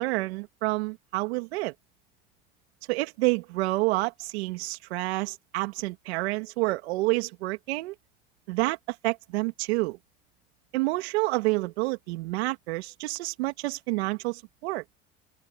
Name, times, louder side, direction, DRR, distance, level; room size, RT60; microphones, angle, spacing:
voice 1, 0.0-1.7 2.9-7.9 8.5-10.0 10.7-14.8, right 23 dB, 85° right, 2.5 m, -28 dB
open air
hypercardioid pair, 80°, 31 cm